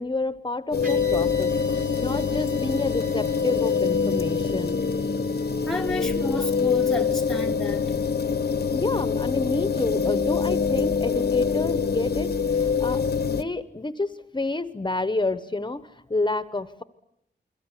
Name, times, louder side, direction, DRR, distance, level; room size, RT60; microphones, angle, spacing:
voice 1, 0.0-4.8 8.7-16.8, left 2 dB, 25° left, 1.0 m, -29 dB
sound 1, 0.7-13.4, left 5 dB, 65° left, 1.0 m, -25 dB
sound 2, 0.8-9.1, right 2 dB, 50° right, 4.4 m, -46 dB
voice 2, 5.7-7.9, left 1 dB, ahead, 1.0 m, -31 dB
29.0 x 22.5 x 8.3 m
wide cardioid pair, 130°, 18 cm